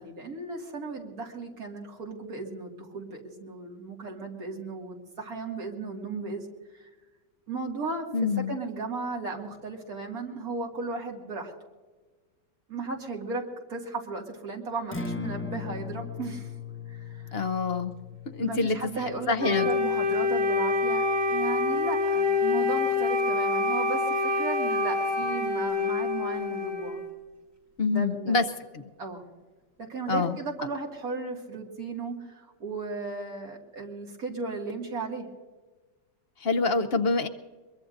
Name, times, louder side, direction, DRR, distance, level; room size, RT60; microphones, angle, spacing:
voice 1, 0.0-6.5 6.7-6.9 7.5-11.5 12.7-16.5 16.9-17.4 18.4-27.0 27.9-28.4 29.0-29.2 29.8-35.3, right 3 dB, 55° right, 0 dB, 2.6 m, -35 dB
voice 2, 8.1-8.5 17.3-17.9 18.3-18.8 19.3-19.7 27.8-28.4 28.7-28.8 30.1-30.4 36.4-37.3, left 4 dB, 55° left, 6 dB, 0.7 m, -26 dB
Acoustic guitar, 14.8-23.0, left 5 dB, 10° left, 0.9 m, -41 dB
Wind instrument woodwind instrument, 19.4-27.1, left 3 dB, 15° right, 2.2 m, -26 dB
22.5 x 22.5 x 2.6 m, 1.3 s
omnidirectional pair, 1.9 m